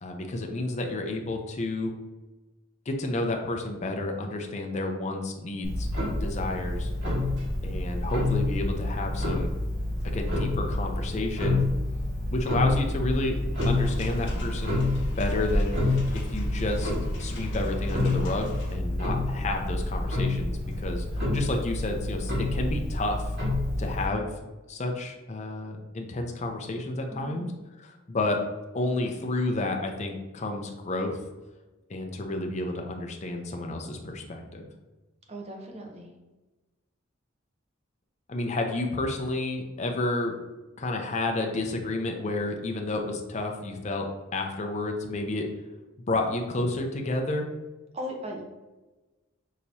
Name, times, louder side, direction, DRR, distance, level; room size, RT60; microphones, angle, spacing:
voice 1, 0.0-1.9 2.9-5.9 6.2-6.9 7.6-9.5 10.0-11.7 12.3-13.4 13.7-16.9 17.2-21.0 21.3-23.3 23.8-27.5 27.8-28.4 28.7-31.2 31.9-34.7 38.3-40.3 40.8-45.5 46.1-47.5, left 2 dB, 35° left, 3 dB, 0.5 m, -31 dB
Clock, 5.6-24.1, left 2 dB, 60° right, 1.5 m, -28 dB
sound 1, 13.6-18.8, left 1 dB, 60° left, 0.9 m, -38 dB
voice 2, 27.1-27.6 35.3-36.1 47.9-48.4, equal, 30° right, 1 dB, 0.7 m, -38 dB
6.3 x 2.8 x 2.7 m, 1.1 s
head